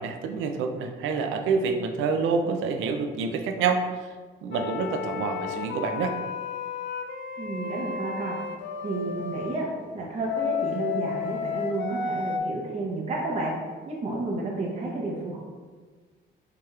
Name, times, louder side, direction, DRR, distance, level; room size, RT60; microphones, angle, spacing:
voice 1, 0.0-4.1 4.4-6.2, right 5 dB, 85° right, 6 dB, 0.4 m, -27 dB
sound 1, 4.5-9.5 10.3-12.4, left 6 dB, 70° left, 0.4 m, -32 dB
voice 2, 7.4-8.4 8.8-9.6 9.9-13.5 13.9-15.4, right 2 dB, 35° right, -4 dB, 0.8 m, -31 dB
4.7 x 2.9 x 2.3 m, 1.5 s
cardioid pair, 90°, 20 cm